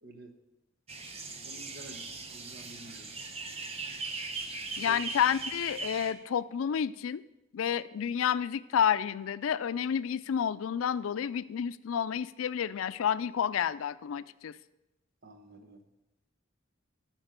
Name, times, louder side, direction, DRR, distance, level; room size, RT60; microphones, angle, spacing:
voice 1, 0.0-0.3 1.4-3.1 4.8-5.0 15.2-15.8, right 1 dB, 50° right, 6 dB, 1.1 m, -50 dB
sound 1, 0.9-6.1, right 3 dB, 30° right, 0.8 m, -39 dB
voice 2, 4.8-7.2 7.5-14.6, left 8 dB, 85° left, 16 dB, 0.4 m, -30 dB
13.0 x 4.5 x 6.6 m, 0.95 s
head